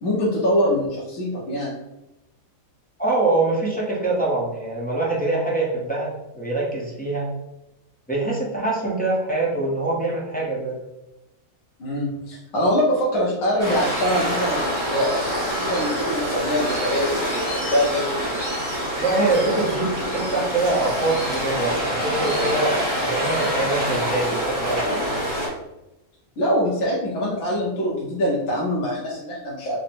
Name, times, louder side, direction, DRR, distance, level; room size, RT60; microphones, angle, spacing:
voice 1, 0.0-1.8 11.8-18.2 26.4-29.8, equal, 65° left, -6 dB, 1.3 m, -24 dB
voice 2, 3.0-7.3 8.1-10.8 18.9-25.0, right 2 dB, 10° left, -5 dB, 0.6 m, -24 dB
Waves surf, 13.6-25.5, equal, 15° right, 1.1 m, -26 dB
3.9 x 2.1 x 4.2 m, 0.95 s
omnidirectional pair, 1.5 m